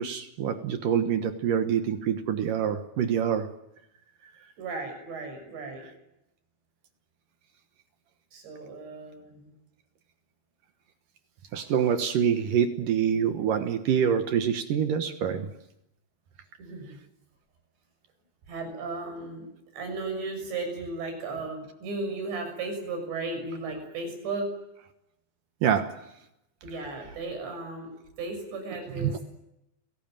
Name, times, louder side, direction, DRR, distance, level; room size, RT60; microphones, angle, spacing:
voice 1, 0.0-3.5 11.5-15.5 25.6-25.9 29.0-29.1, right 8 dB, 65° right, 8 dB, 2.5 m, -26 dB
voice 2, 4.6-5.9 8.3-9.5 16.6-17.0 18.5-19.5 19.7-24.5 26.6-29.2, right 3 dB, 85° right, 5 dB, 8.7 m, -35 dB
30.0 x 17.5 x 9.1 m, 0.86 s
omnidirectional pair, 4.9 m